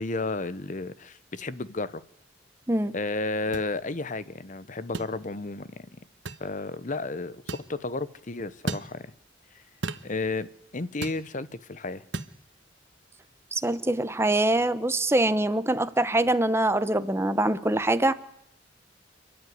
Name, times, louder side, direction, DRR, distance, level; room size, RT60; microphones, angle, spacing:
voice 1, 0.0-2.0 2.9-5.9 6.4-9.0 10.0-10.5 10.7-12.0, left 3 dB, 40° left, 0.9 m, -32 dB
sound 1, 3.5-3.7 4.9-5.1 6.3-6.5 7.5-7.7 8.7-8.9 9.8-10.1 11.0-11.2 12.1-12.3, right 3 dB, 80° right, 1.2 m, -33 dB
voice 2, 13.5-18.1, right 1 dB, 15° right, 0.9 m, -24 dB
29.5 x 11.5 x 9.4 m
head